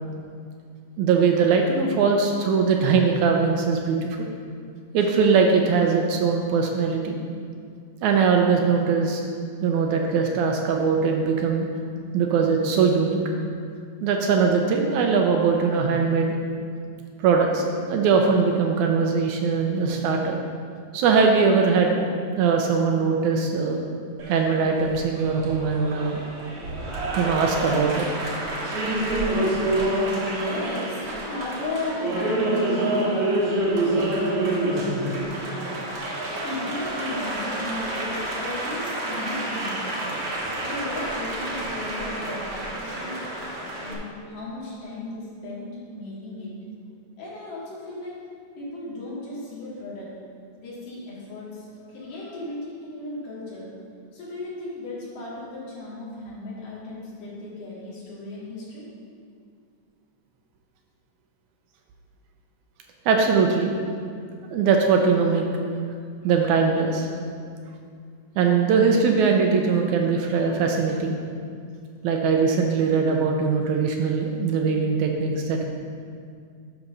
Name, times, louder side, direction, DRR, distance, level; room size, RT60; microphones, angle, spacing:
voice 1, 1.0-4.2 4.9-7.2 8.0-9.2 9.6-11.7 12.1-13.2 14.0-16.3 17.2-20.4 20.9-22.1 22.4-23.8 24.3-26.3 27.2-28.1 63.1-63.7 64.5-65.4 66.2-67.1 68.4-71.2 72.0-75.6, right 5 dB, 75° right, 2 dB, 1.9 m, -21 dB
Applause, 24.2-43.9, right 1 dB, 55° right, 1.7 m, -28 dB
voice 2, 30.2-33.4 33.8-35.8 36.3-39.8 40.6-43.3 43.8-46.5 47.2-48.2 48.6-50.1 50.6-53.7 54.1-58.9, left 2 dB, 80° left, -8 dB, 3.9 m, -35 dB
11.5 x 4.0 x 5.4 m, 2.2 s
omnidirectional pair, 3.7 m